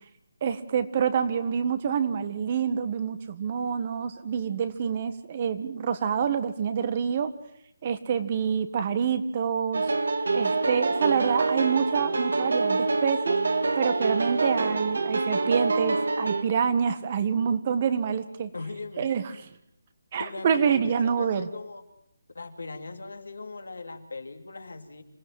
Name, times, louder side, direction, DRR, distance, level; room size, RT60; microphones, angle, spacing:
voice 1, 0.4-7.3 7.8-9.8 10.3-13.4 13.7-18.5 19.0-19.3 20.1-21.5, right 7 dB, 35° right, 11 dB, 1.5 m, -27 dB
sound 1, 9.7-16.4, right 3 dB, 70° right, 2.0 m, -26 dB
voice 2, 18.5-19.1 20.2-21.8 22.3-25.0, left 3 dB, 80° left, 6 dB, 2.8 m, -39 dB
26.5 x 16.0 x 7.5 m, 0.76 s
figure-of-eight pair, 160°, 0 cm